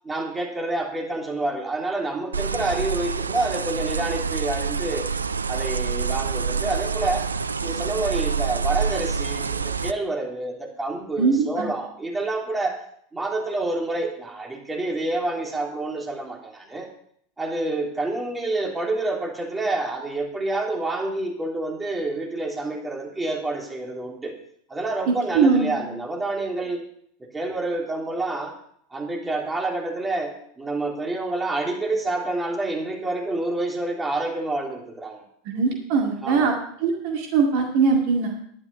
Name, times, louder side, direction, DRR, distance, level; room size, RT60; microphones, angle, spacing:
voice 1, 0.0-5.1 5.5-7.2 7.6-12.8 13.1-16.9 17.4-24.3 24.7-26.9 27.3-28.5 28.9-35.2 36.2-36.5, right 2 dB, 15° right, -1 dB, 3.3 m, -28 dB
sound 1, 2.3-9.9, right 5 dB, 80° right, 0.4 m, -27 dB
voice 2, 11.2-11.7 25.1-25.9 35.5-36.5 36.8-38.4, right 5 dB, 55° right, 1 dB, 2.1 m, -21 dB
11.5 x 10.5 x 5.5 m, 0.67 s
figure-of-eight pair, 80°, 0 cm